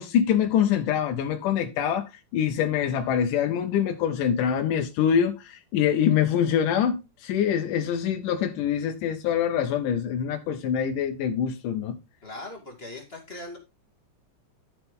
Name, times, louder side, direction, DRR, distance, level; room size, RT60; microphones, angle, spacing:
voice 1, 0.0-12.0, left 8 dB, 85° left, 2.5 m, -25 dB
voice 2, 12.2-13.6, left 2 dB, 20° left, 2.2 m, -39 dB
12.0 x 7.0 x 3.7 m
omnidirectional pair, 3.6 m